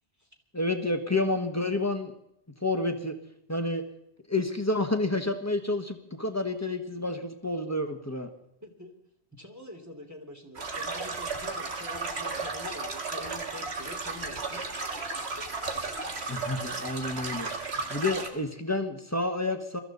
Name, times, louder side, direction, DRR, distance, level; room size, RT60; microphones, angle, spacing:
voice 1, 0.5-2.1 2.6-3.2 3.5-3.8 4.3-8.3 16.3-17.5 17.9-19.8, left 2 dB, 15° left, 5 dB, 1.5 m, -29 dB
voice 2, 8.6-8.9 9.4-14.6, left 1 dB, 15° right, 1 dB, 2.8 m, -45 dB
sound 1, 10.6-18.3, right 3 dB, 85° right, 2.0 m, -34 dB
22.5 x 14.0 x 4.1 m, 0.73 s
omnidirectional pair, 1.1 m